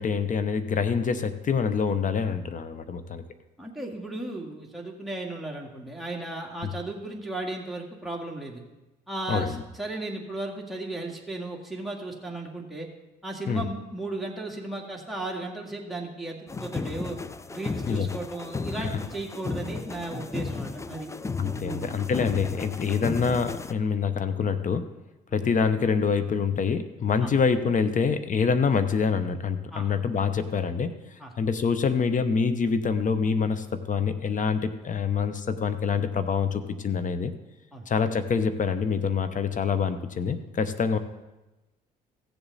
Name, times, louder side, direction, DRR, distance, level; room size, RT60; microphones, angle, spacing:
voice 1, 0.0-3.2 6.6-6.7 9.3-9.6 13.5-13.7 17.9-18.1 18.8-18.9 21.4-24.9 25.3-30.9 31.4-37.3 37.9-41.0, left 6 dB, 40° left, 11 dB, 0.9 m, -26 dB
voice 2, 3.6-8.6 9.1-12.9 13.2-17.2 17.5-21.1 21.6-22.0 25.3-25.4 27.2-27.3 29.7-29.9 31.2-31.3 37.7-37.9, right 2 dB, ahead, -2 dB, 2.2 m, -35 dB
sound 1, 16.5-23.7, left 4 dB, 15° left, 0.4 m, -34 dB
15.5 x 7.1 x 4.1 m, 1.1 s
supercardioid pair, 80°, 19 cm